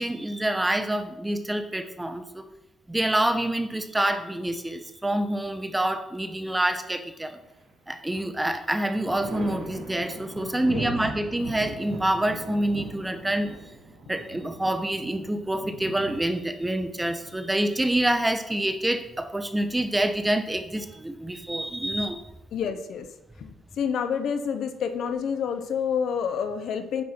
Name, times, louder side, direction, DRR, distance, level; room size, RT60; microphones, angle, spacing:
voice 1, 0.0-2.4 2.9-7.4 7.9-13.6 14.1-22.2, right 1 dB, 10° right, 8 dB, 0.9 m, -27 dB
Thunder, 7.4-8.2 8.5-18.1 19.6-20.4, right 3 dB, 85° right, 2.5 m, -40 dB
voice 2, 10.4-10.9 22.5-23.1 23.4-27.0, left 7 dB, 70° left, 8 dB, 0.8 m, -29 dB
9.6 x 5.6 x 4.5 m, 0.90 s
cardioid pair, 90°, 0 cm